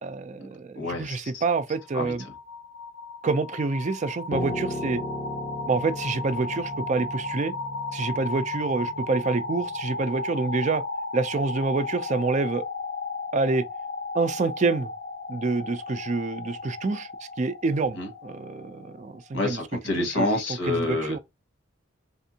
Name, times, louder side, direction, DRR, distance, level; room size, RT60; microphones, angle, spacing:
voice 1, 0.0-2.3 3.2-5.0 5.7-7.5 7.9-10.8 11.1-12.6 13.3-13.6 14.1-14.9 15.3-17.1 17.4-19.6 20.0-21.2, right 3 dB, 35° right, 0.4 m, -27 dB
voice 2, 0.7-1.4 1.9-2.1 18.0-18.1 19.3-21.2, left 2 dB, 75° left, 1.5 m, -28 dB
sound 1, 1.6-19.5, left 3 dB, 55° left, 0.8 m, -35 dB
Piano, 4.3-9.6, left 1 dB, 15° left, 0.5 m, -36 dB
3.5 x 3.4 x 2.7 m
head